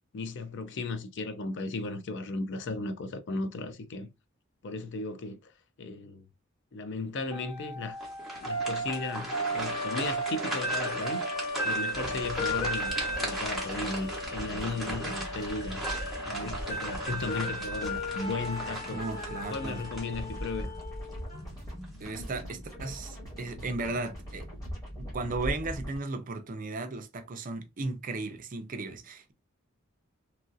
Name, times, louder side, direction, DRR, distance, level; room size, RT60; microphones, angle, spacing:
voice 1, 0.1-4.1 4.6-5.5 5.8-6.2 6.7-8.0 8.4-11.2 11.6-15.8 16.2-19.0 19.5-20.8, left 3 dB, 60° left, 0.4 m, -36 dB
sound 1, 7.3-21.4, equal, 35° left, 1.6 m, -35 dB
sound 2, 8.0-20.6 21.1-21.2 21.8-22.3, right 2 dB, ahead, 0.9 m, -38 dB
sound 3, 11.9-26.0, equal, 15° left, 1.4 m, -41 dB
voice 2, 18.9-19.8 22.0-24.5 25.0-29.3, right 3 dB, 40° right, 0.5 m, -35 dB
3.0 x 2.5 x 2.5 m
head